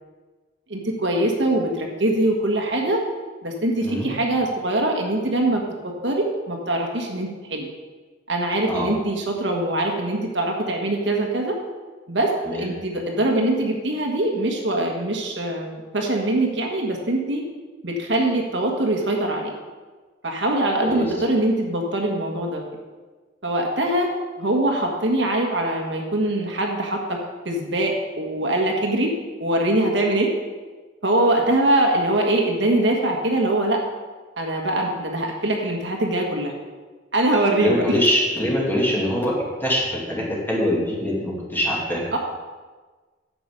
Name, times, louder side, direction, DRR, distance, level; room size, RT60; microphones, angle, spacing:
voice 1, 0.7-3.0 3.4-7.7 8.3-11.5 12.1-17.4 17.8-19.5 20.2-22.6 23.4-24.1 24.4-27.2 27.4-29.1 29.4-30.3 31.0-33.8 34.4-36.5 37.1-37.8 42.1-42.2, right 1 dB, 70° right, 1 dB, 1.6 m, -23 dB
voice 2, 37.6-39.3 39.6-42.1, equal, 10° left, -4 dB, 2.5 m, -23 dB
9.9 x 7.9 x 5.2 m, 1.4 s
head